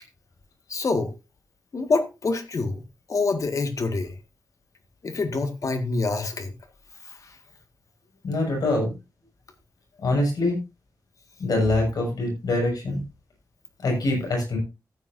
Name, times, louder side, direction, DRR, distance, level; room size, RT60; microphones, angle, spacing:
voice 1, 0.7-1.1 1.7-2.8 3.1-4.2 5.0-6.5 7.1-7.2, left 3 dB, 55° left, 1.8 m, -26 dB
voice 2, 8.2-8.9 10.0-10.6 11.4-13.0 13.8-14.6, left 2 dB, 80° left, 6.2 m, -24 dB
14.5 x 9.3 x 2.6 m
wide cardioid pair, 85°, 7 cm